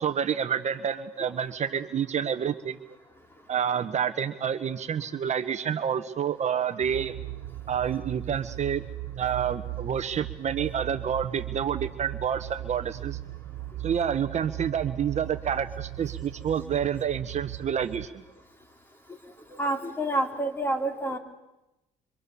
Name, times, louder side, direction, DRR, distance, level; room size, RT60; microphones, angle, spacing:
voice 1, 0.0-2.8 3.5-7.1 7.7-8.8 9.2-13.2 13.8-18.1, right 8 dB, 45° right, 9 dB, 1.2 m, -28 dB
sound 1, 6.8-18.1, right 15 dB, 70° right, 0.9 m, -38 dB
voice 2, 19.5-21.2, right 1 dB, 15° left, 5 dB, 3.1 m, -28 dB
26.0 x 25.0 x 7.0 m, 0.97 s
cardioid pair, 110°, 17 cm